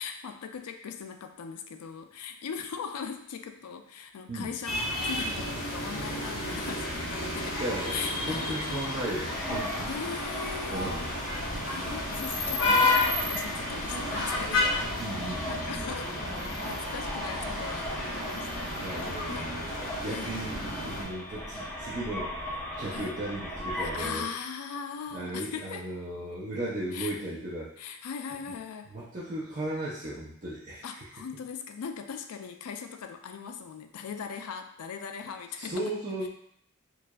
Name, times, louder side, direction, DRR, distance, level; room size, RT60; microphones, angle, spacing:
voice 1, 0.0-7.6 7.9-8.8 9.9-11.0 11.7-14.7 15.5-16.1 16.6-18.7 19.3-19.5 20.1-20.4 22.9-23.2 23.8-25.9 26.9-27.1 27.8-28.9 30.8-35.8, left 6 dB, 75° left, 7 dB, 0.4 m, -39 dB
sound 1, 4.6-21.0, left 2 dB, 55° left, 1.0 m, -31 dB
voice 2, 7.6-8.0 8.2-9.9 10.7-11.2 15.0-15.9 18.8-24.3 25.1-27.7 28.9-30.9 35.6-36.3, right 1 dB, 35° right, -8 dB, 0.6 m, -36 dB
sound 2, 9.3-24.1, equal, 5° left, 0.7 m, -38 dB
4.6 x 2.5 x 2.3 m, 0.70 s
head